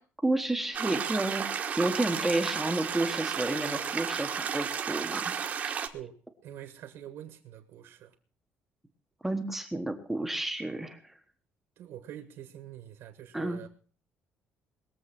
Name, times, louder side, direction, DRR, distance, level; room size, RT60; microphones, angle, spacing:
voice 1, 0.2-5.3 5.6-5.8 9.2-11.1 13.3-13.7, right 2 dB, 5° right, 1.2 m, -31 dB
sound 1, 0.7-5.9, right 7 dB, 35° right, 1.3 m, -33 dB
voice 2, 5.9-8.1 11.8-13.7, right 11 dB, 65° right, 1.7 m, -45 dB
21.0 x 7.6 x 5.9 m
cardioid pair, 175°, 5 cm